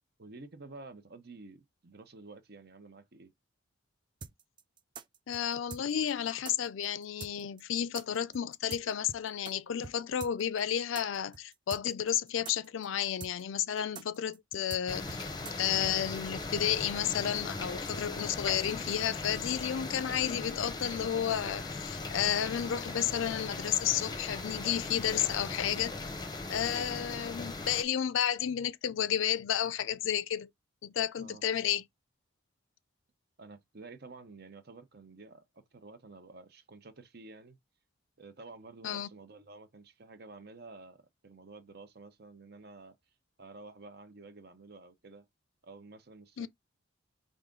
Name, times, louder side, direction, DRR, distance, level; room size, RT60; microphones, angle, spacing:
voice 1, 0.2-3.3 31.2-31.4 33.4-37.6 38.2-43.0 43.4-45.3 45.6-46.5, right 3 dB, 55° right, 0.8 m, -51 dB
sound 1, 4.2-9.5 9.8-9.9 10.2-15.9, right 4 dB, 25° right, 0.4 m, -45 dB
voice 2, 5.3-15.3 15.6-25.9 26.5-30.5 30.8-31.8 38.8-39.1 46.4-46.5, left 9 dB, 75° left, 0.4 m, -32 dB
sound 2, 14.9-27.8, left 3 dB, 20° left, 0.7 m, -39 dB
4.8 x 2.5 x 3.8 m
head